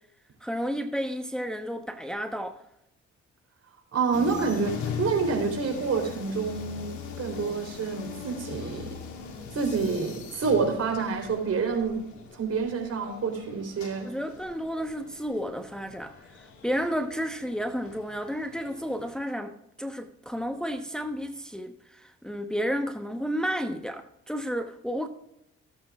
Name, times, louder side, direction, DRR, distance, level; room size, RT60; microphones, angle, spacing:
voice 1, 0.4-2.6 14.0-16.1 16.6-19.5 19.8-25.1, equal, ahead, 1.1 m, -32 dB
voice 2, 3.9-8.9 9.5-12.0 12.3-14.1, right 5 dB, 55° right, 3.8 m, -28 dB
sound 1, 4.1-19.2, left 6 dB, 70° left, 2.4 m, -41 dB
17.0 x 8.1 x 2.4 m
hypercardioid pair, 50°, 30 cm